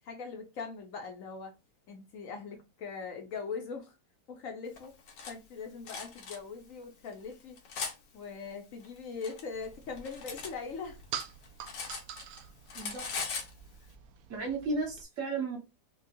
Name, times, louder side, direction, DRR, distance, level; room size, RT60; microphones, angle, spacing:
voice 1, 0.0-1.5 1.9-3.9 4.3-4.9 5.3-7.6 8.1-11.0, left 5 dB, 60° left, 0.9 m, -41 dB
Cutlery silverware, 4.8-5.3 5.9-6.4 7.1-8.0 8.8-10.5 10.9-12.4 12.7-13.5, left 5 dB, 85° left, 1.5 m, -39 dB
sound 1, 9.6-15.0, right 8 dB, 70° right, 0.9 m, -46 dB
voice 2, 12.7-13.4 14.3-15.6, right 3 dB, 50° right, 1.7 m, -34 dB
5.0 x 2.3 x 2.6 m
omnidirectional pair, 1.8 m